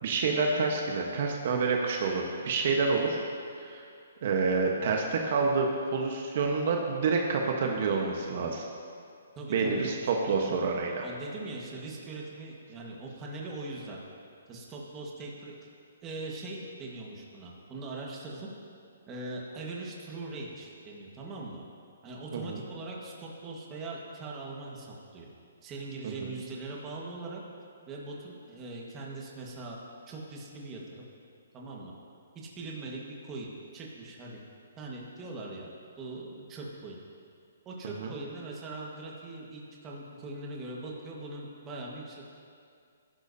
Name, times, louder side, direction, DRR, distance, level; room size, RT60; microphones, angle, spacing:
voice 1, 0.0-3.2 3.6-3.8 4.2-8.6 9.5-11.1 22.3-22.6 26.0-26.3 38.0-38.1, right 4 dB, 50° right, 1 dB, 1.1 m, -28 dB
voice 2, 9.3-10.0 11.0-14.0 14.5-15.5 16.0-18.5 19.1-21.6 22.0-25.3 25.6-27.4 27.9-29.8 30.1-31.0 31.5-31.9 32.3-34.4 34.8-35.7 36.0-37.0 37.6-42.4, right 2 dB, 15° right, -3 dB, 1.5 m, -41 dB
17.5 x 11.0 x 2.8 m, 2.4 s
hypercardioid pair, 160°, 0 cm